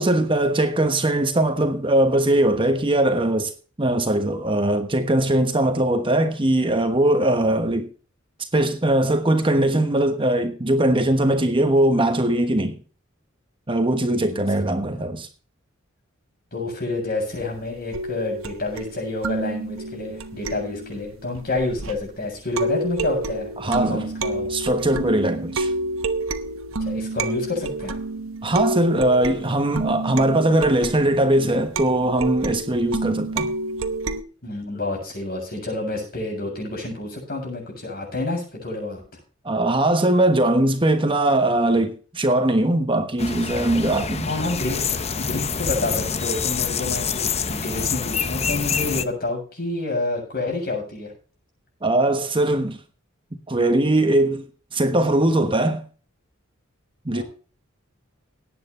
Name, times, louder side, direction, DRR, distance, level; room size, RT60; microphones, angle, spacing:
voice 1, 0.0-7.9 8.5-12.8 13.7-15.3 23.6-24.0 24.5-25.7 28.4-33.5 39.4-44.3 51.8-52.8 53.5-54.4 54.7-55.8 57.0-57.2, right 1 dB, 25° right, 1.2 m, -20 dB
voice 2, 14.1-14.4 16.5-24.5 25.4-25.5 26.8-28.0 34.4-39.0 44.3-51.1 57.1-57.2, left 2 dB, 50° left, 7.5 m, -29 dB
sound 1, 17.9-22.1 22.6-34.2, right 2 dB, 80° right, 1.1 m, -29 dB
sound 2, 43.2-49.1, left 6 dB, 30° left, 0.8 m, -26 dB
18.0 x 9.2 x 3.4 m
head